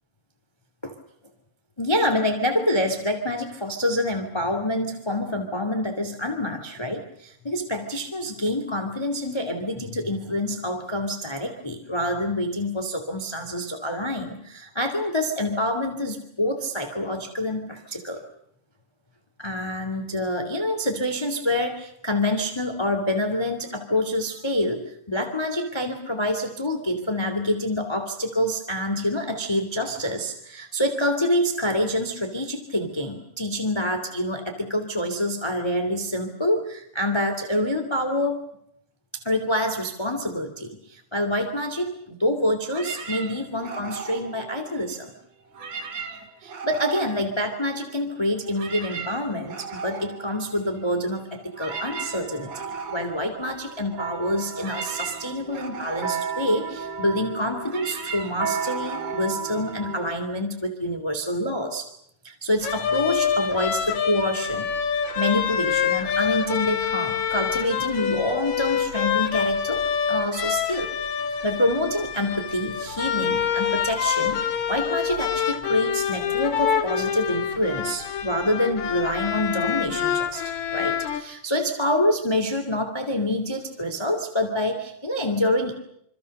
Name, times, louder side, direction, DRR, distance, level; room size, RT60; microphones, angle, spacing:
voice 1, 1.8-18.2 19.4-38.4 39.1-45.1 46.4-61.9 62.2-64.7 65.1-69.8 70.1-70.9 71.4-80.4 80.7-85.8, left 1 dB, 10° left, 6 dB, 2.3 m, -27 dB
sound 1, 42.7-45.1 45.5-48.0 48.3-60.2, right 5 dB, 55° right, 3.5 m, -38 dB
sound 2, 51.7-60.2, right 5 dB, 35° right, 3.4 m, -34 dB
sound 3, 62.6-81.2, left 8 dB, 65° left, 3.0 m, -26 dB
27.0 x 26.0 x 6.7 m, 0.73 s
omnidirectional pair, 3.6 m